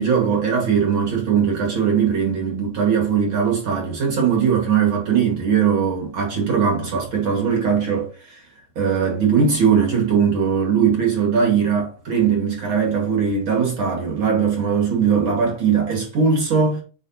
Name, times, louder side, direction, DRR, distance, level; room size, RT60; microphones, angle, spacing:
voice 1, 0.0-8.4 8.7-16.8, right 6 dB, 60° right, 1.3 m, -20 dB
8.5 x 4.8 x 2.7 m
omnidirectional pair, 4.8 m